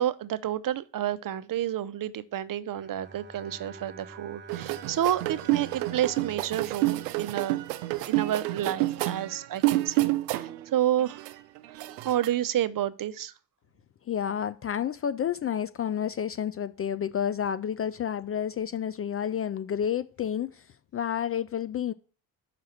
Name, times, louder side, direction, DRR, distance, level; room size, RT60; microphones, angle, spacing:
voice 1, 0.0-7.6 8.1-11.2 11.7-13.3, right 11 dB, 45° right, 0.7 m, -30 dB
Bowed string instrument, 2.7-8.0, right 3 dB, 20° right, 1.2 m, -48 dB
sound 1, 4.5-10.7 11.0-12.3, right 18 dB, 90° right, 0.6 m, -29 dB
voice 2, 14.1-20.7 20.9-21.9, left 9 dB, 30° left, 0.4 m, -30 dB
5.9 x 4.8 x 5.7 m
hypercardioid pair, 55°, 48 cm